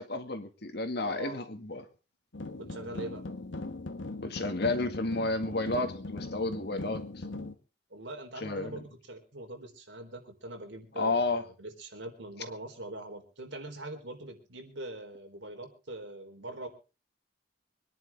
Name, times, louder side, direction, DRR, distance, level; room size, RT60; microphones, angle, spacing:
voice 1, 0.0-1.9 4.2-7.0 8.4-8.8 11.0-11.4, left 2 dB, 60° left, 7 dB, 2.0 m, -31 dB
voice 2, 1.0-1.4 2.6-3.3 7.9-16.7, right 1 dB, 80° right, 4 dB, 3.8 m, -43 dB
sound 1, 2.3-7.5, left 2 dB, 90° left, 1.4 m, -40 dB
25.0 x 10.5 x 3.6 m, 0.33 s
head